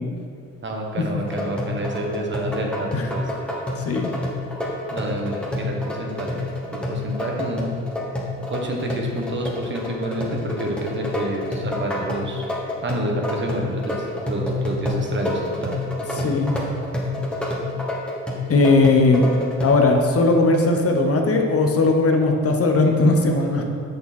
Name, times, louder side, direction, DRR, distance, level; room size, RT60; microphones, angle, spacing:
voice 1, 0.6-3.2 4.9-6.4 6.7-7.7 8.5-12.5 12.8-14.0 14.2-15.7 16.1-16.3, right 1 dB, 40° right, 1 dB, 1.4 m, -28 dB
sound 1, 1.2-19.7, left 2 dB, 5° left, 1.8 m, -28 dB
voice 2, 3.8-4.1 16.1-16.6 18.5-19.3 19.6-23.6, left 3 dB, 50° left, 3 dB, 1.1 m, -18 dB
7.0 x 6.6 x 4.3 m, 2.3 s
cardioid pair, 90°, 30 cm